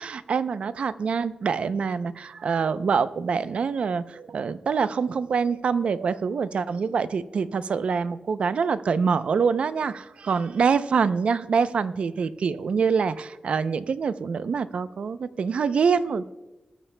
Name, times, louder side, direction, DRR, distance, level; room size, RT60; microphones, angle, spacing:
voice 1, 0.0-16.2, right 5 dB, 70° right, 13 dB, 0.5 m, -25 dB
20.0 x 13.0 x 2.2 m, 1.1 s
wide cardioid pair, 160°, 2 cm